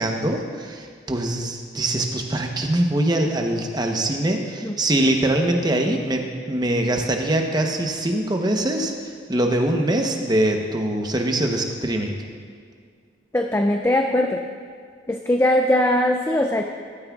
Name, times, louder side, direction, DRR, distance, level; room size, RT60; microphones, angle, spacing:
voice 1, 0.0-12.2, right 1 dB, 20° right, 3 dB, 0.9 m, -23 dB
voice 2, 13.3-14.5 15.1-16.6, left 1 dB, 15° left, 4 dB, 0.4 m, -20 dB
15.0 x 13.0 x 2.4 m, 2.1 s
head